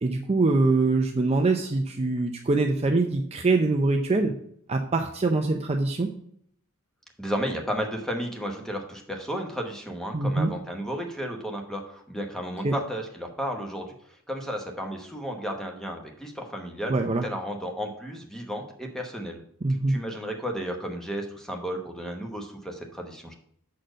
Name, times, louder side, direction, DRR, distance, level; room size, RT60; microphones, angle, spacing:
voice 1, 0.0-4.3 4.7-6.1 10.1-10.5 12.6-12.7 16.9-17.2 19.6-20.0, right 3 dB, 30° right, 4 dB, 0.5 m, -24 dB
voice 2, 7.2-13.9 14.3-16.9 17.2-19.4 19.9-23.3, equal, ahead, 2 dB, 1.0 m, -33 dB
6.4 x 4.3 x 6.3 m, 0.66 s
head